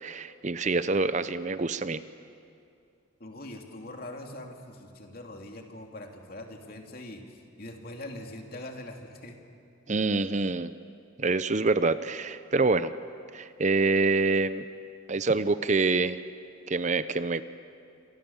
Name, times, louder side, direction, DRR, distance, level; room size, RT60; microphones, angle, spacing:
voice 1, 0.0-2.0 9.9-10.7 11.2-12.9 13.3-14.7 15.1-16.2 16.7-17.4, right 3 dB, 35° right, 13 dB, 0.6 m, -26 dB
voice 2, 3.2-9.4 9.9-10.1, left 1 dB, 50° left, 2 dB, 2.9 m, -42 dB
28.5 x 27.0 x 7.3 m, 2.5 s
head